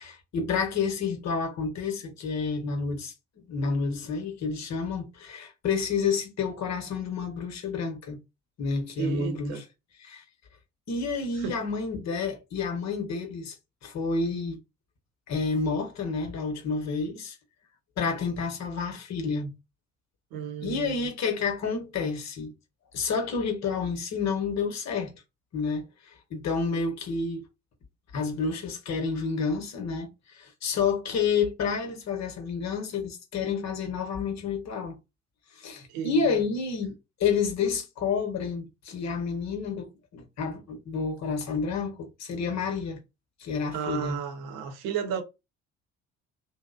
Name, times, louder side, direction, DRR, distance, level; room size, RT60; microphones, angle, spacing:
voice 1, 0.0-3.1 3.5-8.2 8.6-9.5 10.0-10.2 10.9-13.6 13.8-14.6 15.3-17.4 18.0-19.5 20.6-22.5 22.9-25.1 25.5-27.5 28.1-35.0 35.5-36.9 37.2-43.0 43.4-44.2, left 5 dB, 45° left, 1.0 m, -29 dB
voice 2, 9.0-9.6 11.4-11.6 20.3-21.1 35.9-36.4 43.7-45.2, right 8 dB, 65° right, 0.9 m, -33 dB
2.7 x 2.0 x 2.4 m
figure-of-eight pair, 50°, 38 cm